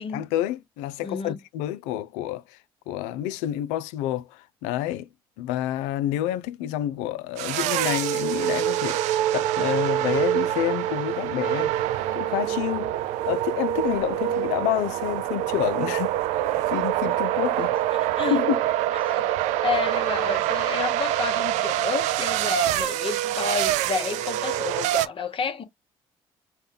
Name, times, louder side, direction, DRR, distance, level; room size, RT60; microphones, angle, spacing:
voice 1, 0.1-2.6 2.9-5.1 5.4-11.7 12.1-12.9 13.3-16.2 16.7-17.7 18.3-18.6, left 12 dB, 85° left, 0.4 m, -28 dB
voice 2, 1.0-1.4 18.2-18.4 19.0-19.3 19.6-25.6, left 6 dB, 50° left, 1.0 m, -30 dB
sound 1, 7.4-25.1, right 13 dB, 75° right, 0.4 m, -25 dB
5.5 x 2.2 x 3.3 m
hypercardioid pair, 60°, 12 cm